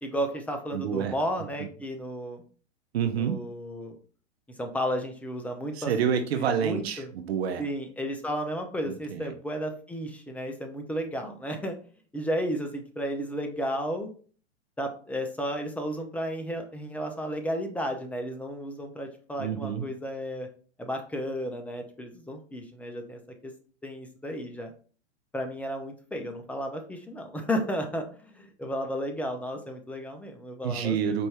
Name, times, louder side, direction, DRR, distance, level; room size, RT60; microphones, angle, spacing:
voice 1, 0.0-2.4 3.2-4.0 4.6-5.9 6.3-7.1 7.6-11.8 12.1-14.1 14.8-20.5 20.8-23.5 23.8-24.7 25.3-31.2, equal, 5° left, 4 dB, 0.4 m, -33 dB
voice 2, 0.7-1.2 2.9-3.4 5.8-7.6 8.8-9.3 19.4-19.8 30.6-31.3, right 7 dB, 65° right, 7 dB, 0.7 m, -28 dB
4.5 x 2.7 x 3.3 m, 0.42 s
hypercardioid pair, 105°, 34 cm